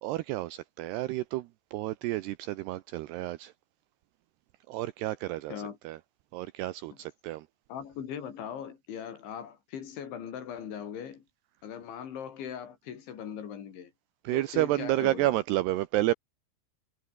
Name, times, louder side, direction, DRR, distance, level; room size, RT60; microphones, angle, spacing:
voice 1, 0.0-3.5 4.7-6.0 6.3-7.5 14.2-16.1, right 17 dB, 80° right, 2.4 m, -30 dB
voice 2, 7.7-11.2 11.6-13.9 14.3-15.4, left 8 dB, 75° left, 5.7 m, -40 dB
omnidirectional pair, 5.5 m